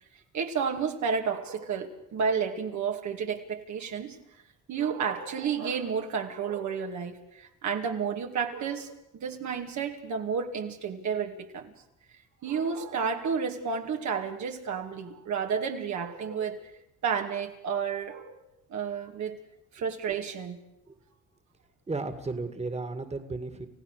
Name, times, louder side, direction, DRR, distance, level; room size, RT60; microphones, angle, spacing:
voice 1, 0.3-4.2 4.7-11.7 12.4-16.7 17.0-18.4 18.7-19.4 19.7-20.6, right 6 dB, 70° right, 3 dB, 2.4 m, -31 dB
voice 2, 21.9-23.7, right 3 dB, 20° right, 9 dB, 2.1 m, -34 dB
29.5 x 15.5 x 6.6 m, 0.81 s
cardioid pair, 90°, 30 cm